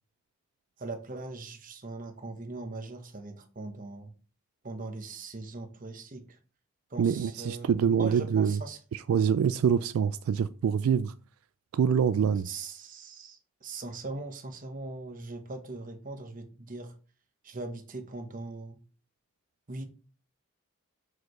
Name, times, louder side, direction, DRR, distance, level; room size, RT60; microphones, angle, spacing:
voice 1, 0.8-4.1 4.6-6.4 6.9-8.8 12.4-16.9 17.4-18.8 19.7-19.8, right 3 dB, 40° right, 0.9 m, -40 dB
voice 2, 7.0-8.6 8.9-11.1 11.7-12.5, right 7 dB, 80° right, 0.3 m, -25 dB
6.2 x 4.8 x 3.1 m
head